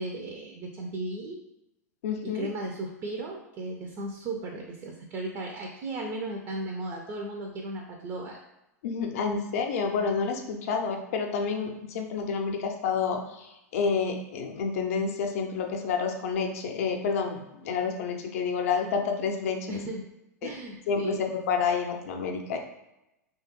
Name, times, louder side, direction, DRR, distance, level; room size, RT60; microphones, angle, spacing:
voice 1, 0.0-1.4 2.2-8.4 19.7-20.1 20.4-21.2, right 2 dB, 35° right, 1 dB, 0.4 m, -35 dB
voice 2, 2.0-2.5 8.8-19.8 20.4-20.5 20.9-22.6, left 5 dB, 55° left, 4 dB, 0.5 m, -29 dB
3.2 x 2.3 x 2.9 m, 0.90 s
figure-of-eight pair, 90°, 9 cm